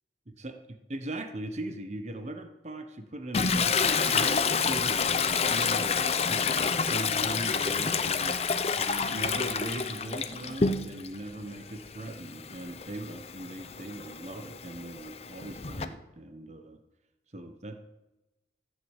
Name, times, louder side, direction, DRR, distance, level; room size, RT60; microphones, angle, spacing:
voice 1, 0.3-5.9 6.3-6.6 6.9-8.4 8.8-16.8 17.3-17.8, right 1 dB, 40° right, 7 dB, 1.2 m, -40 dB
Toilet flush, 3.3-11.1 11.5-15.8, left 5 dB, 35° left, 0.8 m, -28 dB
14.0 x 7.8 x 8.3 m, 0.99 s
head